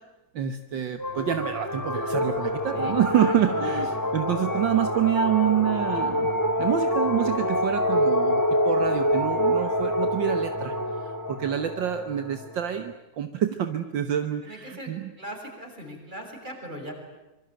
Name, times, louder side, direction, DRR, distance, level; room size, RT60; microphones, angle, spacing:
voice 1, 0.4-6.3 6.6-10.7 11.0-15.1, right 10 dB, 70° right, 9 dB, 1.9 m, -27 dB
sound 1, 1.0-12.8, left 1 dB, 10° left, 2.1 m, -26 dB
voice 2, 2.8-3.8 14.4-14.9 15.2-16.9, equal, 20° right, 2 dB, 7.1 m, -39 dB
26.0 x 24.0 x 9.0 m, 1.1 s
omnidirectional pair, 2.1 m